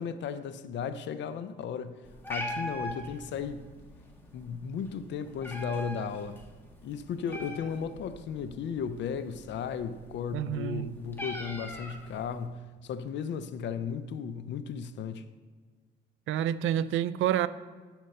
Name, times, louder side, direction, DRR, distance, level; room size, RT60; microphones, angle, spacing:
voice 1, 0.0-2.0 2.3-3.7 4.3-6.4 6.8-15.2, left 6 dB, 65° left, 0.5 m, -35 dB
Meow, 2.0-12.5, equal, 10° left, 1.3 m, -43 dB
voice 2, 10.3-10.9 16.3-17.5, right 11 dB, 80° right, 0.4 m, -28 dB
9.3 x 4.4 x 6.5 m
cardioid pair, 90°, 20 cm